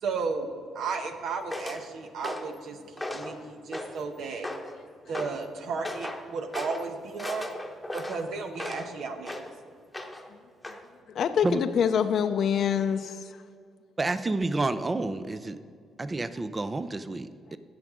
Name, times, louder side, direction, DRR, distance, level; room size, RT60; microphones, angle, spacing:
voice 1, 0.0-4.5 5.1-7.5 7.9-9.4, right 4 dB, 70° right, 6 dB, 1.0 m, -34 dB
sound 1, 1.5-1.8 2.2-2.6 3.0-3.4 3.7-4.1 4.4-4.8 5.1-5.4 5.8-6.2 6.5-6.8 7.2-8.9 9.2-9.5 9.9-10.3 10.6-10.8, left 1 dB, 5° left, 1.1 m, -36 dB
voice 2, 11.1-13.4, left 8 dB, 65° left, 8 dB, 0.4 m, -25 dB
voice 3, 14.0-15.6 16.0-17.6, right 2 dB, 25° right, 12 dB, 0.5 m, -29 dB
18.0 x 6.1 x 3.7 m, 2.1 s
cardioid pair, 90°, 0 cm